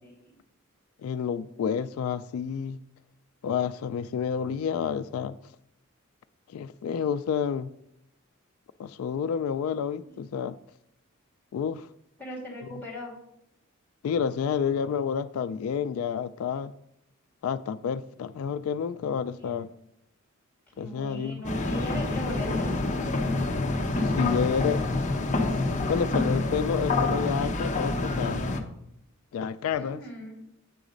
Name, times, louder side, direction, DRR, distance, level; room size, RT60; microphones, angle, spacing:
voice 1, 0.0-0.4 10.0-10.2 12.2-13.2 19.4-19.7 20.7-23.5 29.7-30.4, left 1 dB, 10° left, 2.5 m, -39 dB
voice 2, 1.0-2.8 3.4-5.4 6.5-7.7 8.8-10.6 11.5-11.9 14.0-16.7 17.4-19.7 20.8-21.4 24.0-24.9 25.9-28.5 29.3-30.0, left 7 dB, 85° left, 0.3 m, -29 dB
sound 1, 21.4-28.6, left 2 dB, 35° left, 0.7 m, -27 dB
8.3 x 3.9 x 5.1 m
head